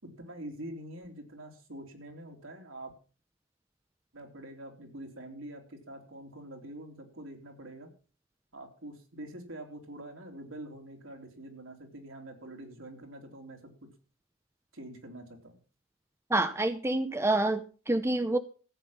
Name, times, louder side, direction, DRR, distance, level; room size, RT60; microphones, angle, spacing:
voice 1, 0.0-2.9 4.1-7.9 8.5-13.7 14.7-15.6, right 1 dB, 70° right, 3 dB, 3.2 m, -45 dB
voice 2, 16.3-18.4, right 2 dB, 15° right, 10 dB, 0.6 m, -27 dB
14.5 x 8.9 x 5.7 m, 0.38 s
head